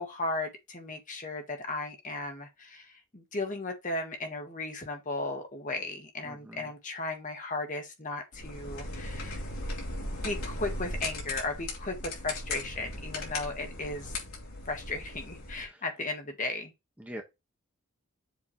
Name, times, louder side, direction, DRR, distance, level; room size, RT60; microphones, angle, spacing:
voice 1, 0.0-9.4 10.2-14.1 14.6-16.7, left 2 dB, 35° left, 1.6 m, -36 dB
voice 2, 6.2-6.7 15.7-15.8 17.0-17.2, equal, 5° right, 1.3 m, -43 dB
sound 1, 8.3-15.6, left 2 dB, 80° left, 3.1 m, -38 dB
7.3 x 3.4 x 4.3 m
head